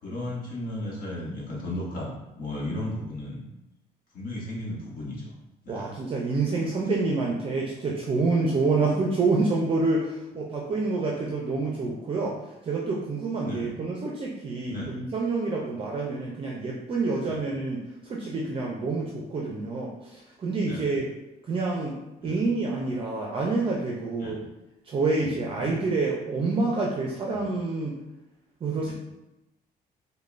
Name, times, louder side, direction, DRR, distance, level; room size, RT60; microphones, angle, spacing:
voice 1, 0.0-3.4 4.1-5.3 5.6-5.9 13.4-13.7 14.7-14.9 17.2-17.4 20.6-21.0 22.2-22.4 24.2-24.4 25.2-25.8 27.3-27.5 28.8-28.9, left 1 dB, 60° left, -5 dB, 1.1 m, -35 dB
voice 2, 5.7-12.4 12.6-21.1 21.5-24.4 24.9-28.0 28.6-28.9, right 3 dB, 35° right, -2 dB, 0.5 m, -27 dB
5.0 x 2.2 x 2.4 m, 0.96 s
cardioid pair, 110°, 17 cm